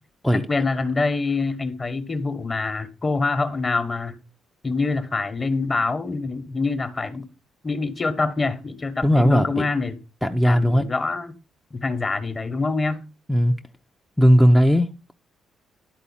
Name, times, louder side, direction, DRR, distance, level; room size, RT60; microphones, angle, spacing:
voice 1, 0.3-4.2 4.6-7.3 7.6-10.0 10.4-11.4 11.7-13.0, left 3 dB, 30° left, 1.2 m, -25 dB
voice 2, 9.0-9.7 10.2-10.8 13.3-13.6 14.2-15.1, equal, ahead, 0.7 m, -17 dB
11.0 x 4.0 x 5.6 m
cardioid pair, 90°, 0 cm